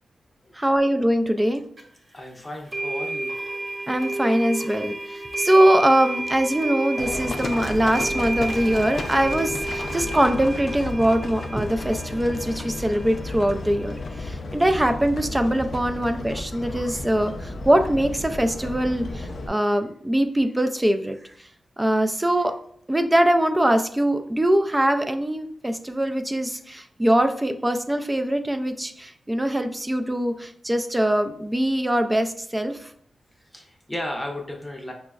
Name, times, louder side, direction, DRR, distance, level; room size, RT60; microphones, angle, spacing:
voice 1, 0.5-1.6 3.9-4.9 5.4-21.2 21.8-22.5 22.9-32.8, right 1 dB, 15° right, 7 dB, 0.4 m, -22 dB
sound 1, 1.8-1.9 2.7-14.3, right 2 dB, 35° right, 0.8 m, -32 dB
voice 2, 2.1-3.3 33.5-34.9, left 1 dB, 20° left, 1 dB, 0.7 m, -34 dB
Livestock farm animals working animals, 7.0-19.5, left 2 dB, 65° left, 0.4 m, -33 dB
5.0 x 2.1 x 2.3 m, 0.63 s
cardioid pair, 60°, 0 cm